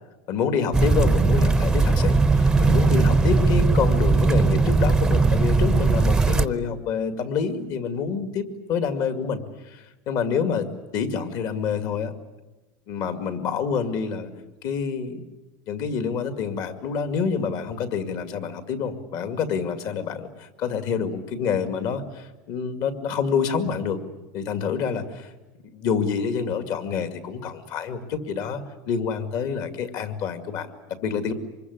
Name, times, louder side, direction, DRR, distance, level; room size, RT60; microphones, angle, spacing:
voice 1, 0.3-10.7 10.9-12.1 12.9-14.3 14.6-15.3 15.7-24.0 24.3-25.3 25.7-31.3, left 6 dB, 45° left, 9 dB, 2.2 m, -27 dB
sound 1, 0.7-6.5, right 3 dB, 5° right, 0.8 m, -19 dB
25.5 x 21.5 x 9.6 m, 1.1 s
cardioid pair, 160°, 9 cm